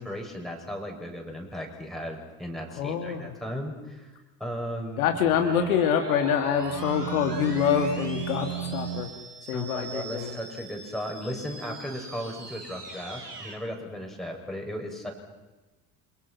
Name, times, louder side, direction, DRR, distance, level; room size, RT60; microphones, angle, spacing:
voice 1, 0.0-4.1 4.4-5.1 9.5-15.1, equal, ahead, 1 dB, 7.7 m, -36 dB
voice 2, 2.8-3.3 5.0-9.1 9.4-10.4, left 8 dB, 65° left, 5 dB, 2.5 m, -26 dB
sound 1, 4.4-9.0, right 11 dB, 60° right, 2.1 m, -37 dB
sound 2, 5.4-13.6, right 2 dB, 90° right, 3.7 m, -42 dB
29.5 x 27.5 x 6.1 m, 1.1 s
figure-of-eight pair, 65°, 45 cm